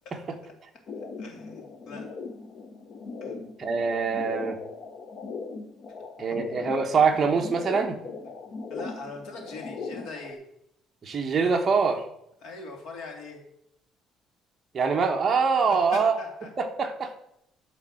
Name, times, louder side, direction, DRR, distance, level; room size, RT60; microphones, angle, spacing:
sound 1, 0.9-10.3, left 4 dB, 40° left, 0.8 m, -39 dB
voice 1, 1.2-2.1 3.2-3.3 8.7-10.4 12.4-13.4 15.6-16.5, left 3 dB, 55° left, 1 dB, 2.6 m, -41 dB
voice 2, 3.6-4.6 6.2-8.0 11.0-12.0 14.7-16.2 16.6-17.1, right 5 dB, 25° right, 3 dB, 1.1 m, -24 dB
11.5 x 3.9 x 7.6 m, 0.79 s
cardioid pair, 175°, 0 cm